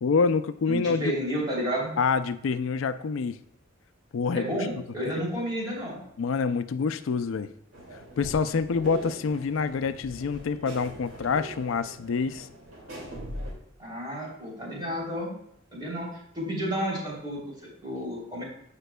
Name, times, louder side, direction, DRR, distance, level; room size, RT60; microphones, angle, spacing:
voice 1, 0.0-1.1 2.0-3.4 4.1-4.5 6.2-7.5 8.2-12.5, left 5 dB, 75° left, 12 dB, 0.4 m, -26 dB
voice 2, 0.7-1.9 4.3-6.0 13.8-15.3 15.7-17.4 17.8-18.4, equal, 25° right, -5 dB, 3.1 m, -31 dB
sound 1, 7.7-13.5, equal, 70° right, 2.3 m, -41 dB
14.5 x 5.2 x 2.2 m, 0.70 s
head